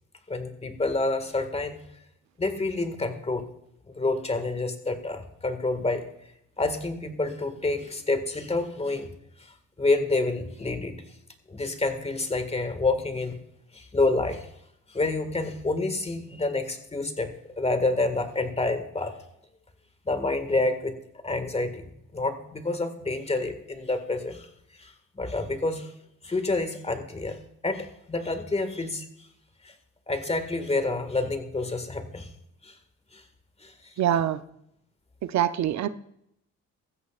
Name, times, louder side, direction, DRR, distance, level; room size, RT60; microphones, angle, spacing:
voice 1, 0.3-1.8 2.4-3.5 3.9-6.1 6.6-9.1 9.4-9.5 9.8-10.9 11.5-13.4 13.7-14.5 14.9-19.2 20.1-21.0 21.2-21.9 22.1-24.5 24.8-25.9 26.2-29.1 29.6-29.7 30.1-32.3 32.6-32.8 33.1-33.2 33.6-33.9, left 2 dB, 20° left, 8 dB, 1.8 m, -28 dB
voice 2, 34.0-34.4 35.2-35.9, right 10 dB, 65° right, 11 dB, 0.7 m, -24 dB
16.0 x 14.0 x 2.4 m, 0.76 s
cardioid pair, 90°, 30 cm